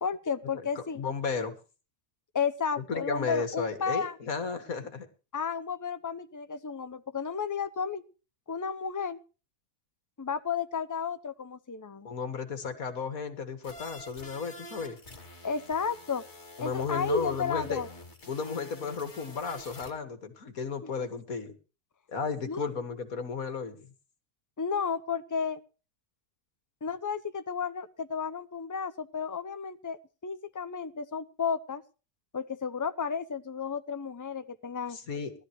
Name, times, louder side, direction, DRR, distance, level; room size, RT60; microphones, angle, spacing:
voice 1, 0.0-1.0 2.3-4.2 5.3-8.0 8.5-9.2 10.2-12.1 15.4-16.2 16.6-17.9 20.8-20.9 22.5-22.7 24.6-25.6 26.8-31.8 32.3-35.0, left 6 dB, 20° left, 12 dB, 0.5 m, -32 dB
voice 2, 0.8-1.6 2.8-5.1 12.0-15.0 16.6-17.8 18.3-21.5 22.1-23.9 34.9-35.3, left 5 dB, 65° left, 9 dB, 2.3 m, -34 dB
sound 1, 13.6-19.9, left 1 dB, 45° left, 2.8 m, -48 dB
19.0 x 13.0 x 3.2 m, 0.34 s
omnidirectional pair, 1.6 m